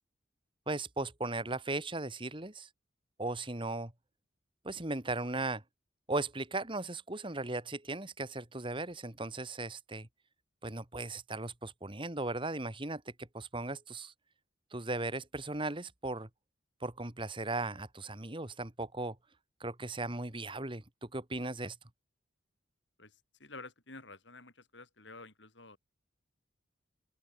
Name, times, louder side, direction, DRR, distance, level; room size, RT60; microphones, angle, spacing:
voice 1, 0.7-2.7 3.2-3.9 4.6-5.6 6.1-10.1 10.6-14.1 14.7-16.3 16.8-19.2 19.6-21.8, right 2 dB, 25° right, 2.1 m, -37 dB
voice 2, 23.0-25.8, left 3 dB, 65° left, 6.6 m, -51 dB
open air
head